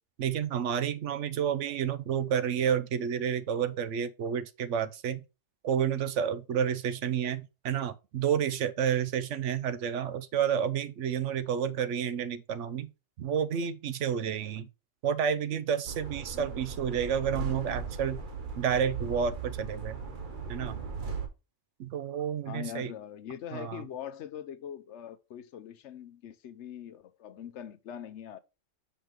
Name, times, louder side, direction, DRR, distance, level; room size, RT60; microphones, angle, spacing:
voice 1, 0.2-5.2 5.6-12.9 13.2-14.7 15.0-18.2 18.6-20.0 20.5-20.8 21.8-22.9 23.5-23.8, right 8 dB, 80° right, 1.0 m, -30 dB
sound 1, 15.9-21.3, right 5 dB, 45° right, 1.1 m, -37 dB
voice 2, 22.4-28.4, left 9 dB, 75° left, 1.0 m, -42 dB
6.0 x 5.5 x 3.0 m
omnidirectional pair, 1.2 m